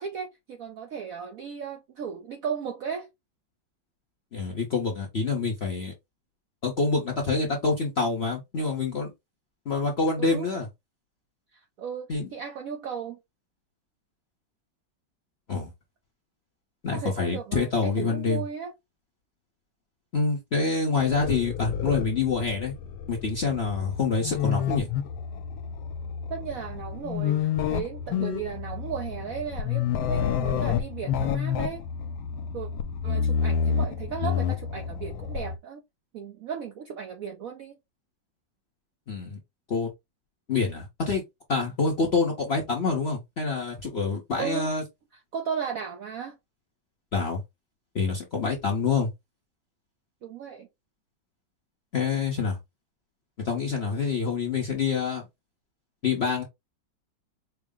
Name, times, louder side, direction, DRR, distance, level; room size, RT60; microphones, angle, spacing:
voice 1, 0.0-3.1 10.2-10.5 11.5-13.2 16.9-18.7 26.3-31.8 32.5-32.7 33.0-35.8 36.1-37.8 44.4-44.7 45.3-46.4 50.2-50.7, right 7 dB, 70° right, 0.8 m, -35 dB
voice 2, 4.3-5.9 6.6-9.1 9.7-10.7 12.1-12.3 15.5-15.7 16.8-18.4 20.1-22.7 23.1-24.9 39.1-39.4 39.7-39.9 40.5-41.2 41.5-44.8 47.1-47.4 47.9-49.1 51.9-52.6 53.4-55.2 56.0-56.4, left 4 dB, 50° left, 0.8 m, -26 dB
sound 1, 21.0-35.6, left 7 dB, 80° left, 1.3 m, -29 dB
4.6 x 2.0 x 3.5 m
omnidirectional pair, 2.1 m